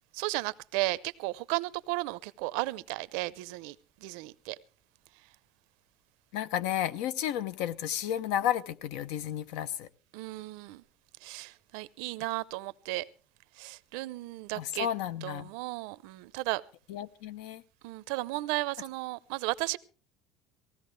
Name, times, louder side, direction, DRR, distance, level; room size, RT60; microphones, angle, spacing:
voice 1, 0.1-3.8 4.0-4.6 10.1-10.8 11.2-13.0 13.6-14.9 15.2-16.6 17.8-19.8, right 21 dB, 90° right, 0.6 m, -34 dB
voice 2, 6.3-9.9 14.5-15.5 16.9-17.6, left 11 dB, 85° left, 0.8 m, -32 dB
19.0 x 16.0 x 3.3 m
cardioid pair, 145°, 0 cm